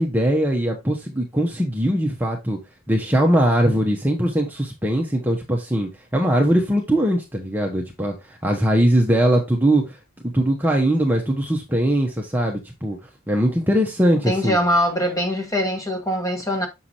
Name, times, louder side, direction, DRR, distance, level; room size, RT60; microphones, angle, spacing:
voice 1, 0.0-2.6 2.9-10.0 10.2-13.0 13.3-14.6, right 1 dB, 10° right, 0.8 m, -21 dB
voice 2, 14.3-16.7, equal, 15° left, 1.2 m, -22 dB
6.3 x 5.7 x 2.8 m
head